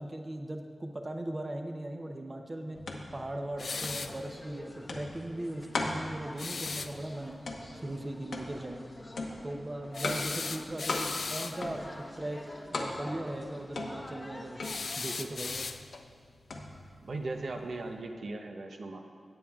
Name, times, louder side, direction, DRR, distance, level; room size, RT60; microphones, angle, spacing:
voice 1, 0.0-2.8 3.1-7.4 7.8-8.8 9.4-12.4 12.7-14.6 15.0-15.6, right 1 dB, 30° right, 4 dB, 0.7 m, -38 dB
sound 1, 2.7-17.9, left 2 dB, 90° left, 1.0 m, -40 dB
sound 2, 3.6-4.2 6.4-6.9 9.9-11.6 14.6-16.1, left 4 dB, 65° left, 0.4 m, -37 dB
sound 3, 3.6-15.7, left 1 dB, 25° left, 0.8 m, -48 dB
voice 2, 17.0-19.0, right 2 dB, 70° right, 3 dB, 0.7 m, -38 dB
17.0 x 8.7 x 2.4 m, 2.1 s
wide cardioid pair, 105°, 0 cm